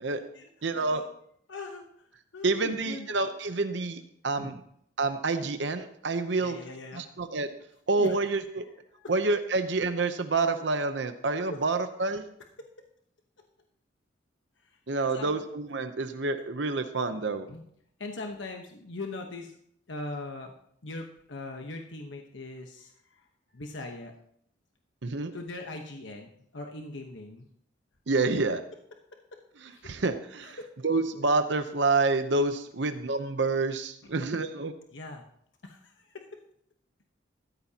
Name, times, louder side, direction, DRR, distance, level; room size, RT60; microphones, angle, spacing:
voice 1, 0.1-1.1 1.5-2.1 2.3-3.1 4.4-4.5 6.4-7.0 8.0-8.2 8.9-9.1 11.5-11.6 12.6-12.7 15.0-15.3 17.5-17.6 18.0-19.6 19.9-20.5 20.8-23.2 23.5-24.1 25.3-27.5 29.3-29.4 29.7-29.9 30.4-30.7 34.0-34.1 34.9-35.2 35.6-36.2, left 2 dB, 75° left, 3 dB, 1.1 m, -41 dB
voice 2, 0.6-1.0 2.4-4.6 5.0-6.6 6.9-7.5 7.9-8.6 9.1-12.2 14.9-17.5 25.0-25.3 28.1-28.6 29.6-30.6 30.8-34.7, right 3 dB, 65° right, 8 dB, 0.8 m, -28 dB
15.0 x 13.0 x 2.9 m, 0.70 s
head